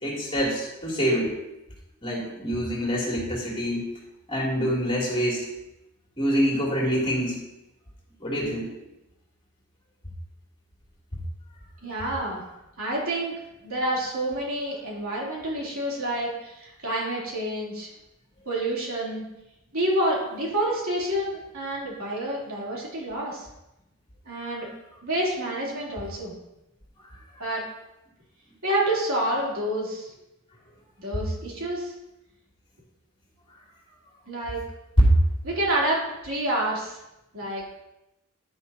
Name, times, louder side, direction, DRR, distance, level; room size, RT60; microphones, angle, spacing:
voice 1, 0.0-1.3 2.0-3.9 4.3-5.5 6.2-7.4 8.2-8.7 35.0-35.1, equal, 25° left, -4 dB, 3.1 m, -24 dB
voice 2, 11.8-12.4 12.8-13.3 13.6-17.9 18.5-19.2 19.7-23.5 24.3-24.7 25.0-26.3 27.4-27.6 28.6-30.1 31.0-32.0 34.3-34.6 35.4-37.0 37.3-37.6, right 1 dB, 70° right, -5 dB, 3.4 m, -28 dB
10.5 x 10.0 x 2.9 m, 0.90 s
head